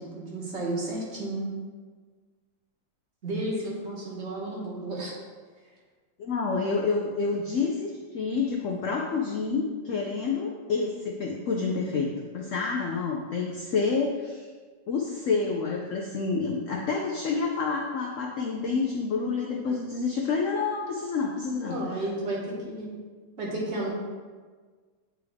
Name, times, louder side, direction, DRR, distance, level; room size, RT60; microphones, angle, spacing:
voice 1, 0.0-1.5 3.2-5.1 21.6-22.9 23.4-23.9, right 1 dB, 40° right, -4 dB, 1.5 m, -32 dB
voice 2, 6.2-14.5 14.9-21.8, left 4 dB, 85° left, 0 dB, 0.6 m, -28 dB
8.9 x 3.4 x 3.4 m, 1.5 s
omnidirectional pair, 2.0 m